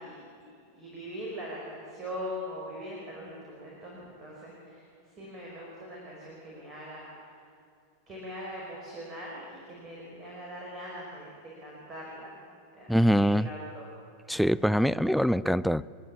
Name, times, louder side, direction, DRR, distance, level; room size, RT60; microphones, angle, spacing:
voice 1, 0.0-7.3 8.1-12.5 12.7-13.9 15.3-15.4, equal, 25° right, -4 dB, 5.3 m, -42 dB
voice 2, 12.9-13.5 14.3-15.8, equal, ahead, 14 dB, 0.4 m, -24 dB
29.5 x 11.0 x 8.5 m, 2.5 s
figure-of-eight pair, 90°, 0 cm